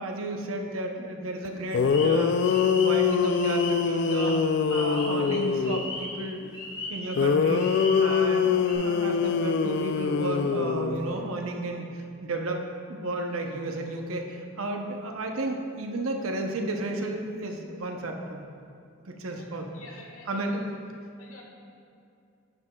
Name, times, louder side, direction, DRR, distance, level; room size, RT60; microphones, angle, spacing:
voice 1, 0.0-2.4 2.8-4.4 4.7-6.5 6.9-7.6 8.0-12.6 12.9-18.5 19.0-19.7 20.3-20.7, right 2 dB, 75° right, 2 dB, 0.8 m, -33 dB
sound 1, 1.4-1.5 1.7-5.9 7.2-11.2, left 5 dB, 55° left, 0.3 m, -24 dB
sound 2, 1.8-8.4 8.6-8.7, left 2 dB, 25° left, 1.5 m, -38 dB
voice 2, 19.7-20.6 21.2-21.4, left 2 dB, 80° left, -1 dB, 1.4 m, -48 dB
10.5 x 7.9 x 2.3 m, 2.5 s
head